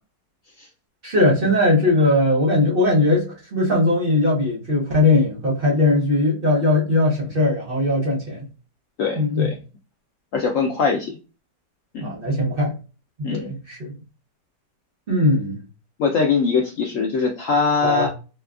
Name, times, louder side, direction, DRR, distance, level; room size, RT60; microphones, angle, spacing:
voice 1, 1.0-8.4 9.2-9.5 12.0-12.7 13.2-13.9 15.1-15.6 17.8-18.1, left 2 dB, 45° right, 0.8 m, -19 dB
voice 2, 9.0-9.5 10.3-11.1 11.9-12.0 13.2-13.5 16.0-18.1, left 5 dB, 75° left, 0.7 m, -21 dB
4.2 x 2.2 x 2.3 m
omnidirectional pair, 1.9 m